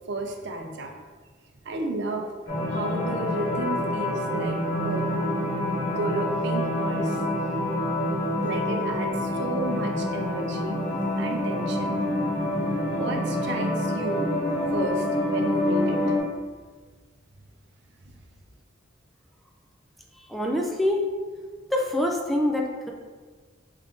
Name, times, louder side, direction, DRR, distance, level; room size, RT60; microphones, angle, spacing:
voice 1, 0.1-0.9 1.6-2.2 2.7-4.6 4.8-5.2 5.9-7.2 8.4-10.8 11.2-12.0 13.0-14.3 14.7-16.2, right 2 dB, 65° right, 2 dB, 0.5 m, -32 dB
sound 1, 2.5-16.2, left 1 dB, 50° left, 1.0 m, -27 dB
voice 2, 20.3-21.0 21.7-22.9, left 1 dB, ahead, 0 dB, 0.4 m, -25 dB
4.6 x 2.5 x 3.6 m, 1.4 s
head